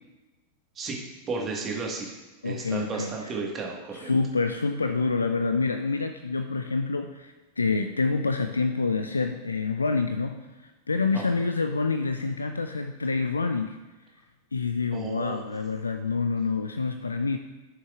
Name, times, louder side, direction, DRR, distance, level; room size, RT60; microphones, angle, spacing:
voice 1, 1.3-2.1 2.4-4.1 11.1-11.4 14.9-15.4, right 4 dB, 25° right, -1 dB, 1.6 m, -33 dB
voice 2, 2.4-3.3 3.9-13.8 14.5-17.4, left 4 dB, 75° left, 7 dB, 0.4 m, -27 dB
12.0 x 6.7 x 2.5 m, 1.2 s
figure-of-eight pair, 90°, 0 cm